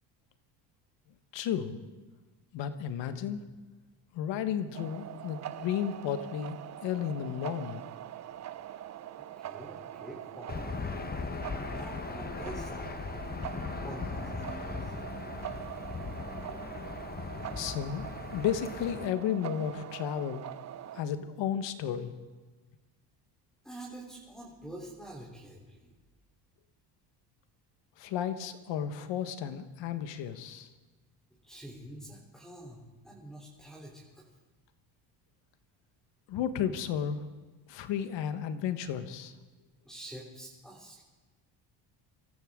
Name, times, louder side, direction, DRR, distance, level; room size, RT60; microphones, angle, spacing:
voice 1, 1.3-1.8 2.5-3.4 4.1-7.9 17.5-20.4 20.9-22.1 28.0-30.7 36.3-37.3 37.7-39.3, left 9 dB, 70° left, 10 dB, 1.4 m, -33 dB
sound 1, 4.7-21.0, right 12 dB, 35° right, 0.6 m, -43 dB
voice 2, 9.3-10.8 11.6-13.4 13.8-15.1 23.6-25.9 31.4-34.2 37.8-37.9 39.8-41.0, right 1 dB, ahead, -5 dB, 3.7 m, -47 dB
Aircraft / Engine, 10.5-19.1, left 5 dB, 20° left, 0.9 m, -39 dB
25.5 x 14.0 x 3.8 m, 1.3 s
cardioid pair, 105°, 46 cm